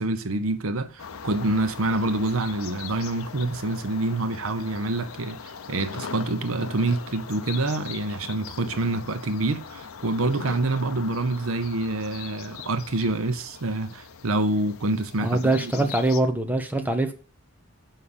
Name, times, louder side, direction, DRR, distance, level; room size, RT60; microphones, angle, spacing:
voice 1, 0.0-15.9, right 2 dB, 70° right, 0.9 m, -27 dB
sound 1, 1.0-16.2, left 6 dB, 75° left, 0.7 m, -40 dB
voice 2, 15.2-17.1, right 2 dB, 10° right, 0.9 m, -23 dB
6.5 x 5.7 x 7.1 m
head